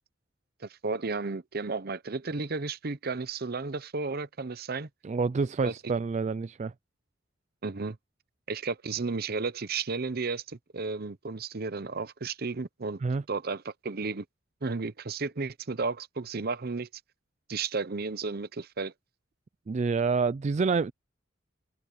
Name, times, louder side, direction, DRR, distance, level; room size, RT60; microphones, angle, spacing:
voice 1, 0.6-4.9 5.6-5.7 7.6-8.0 8.5-13.0 13.3-14.2 14.6-16.9 17.5-18.9, right 4 dB, 50° right, 0.8 m, -33 dB
voice 2, 5.0-6.7 13.0-13.2 19.7-20.9, right 4 dB, 35° right, 0.3 m, -27 dB
open air
head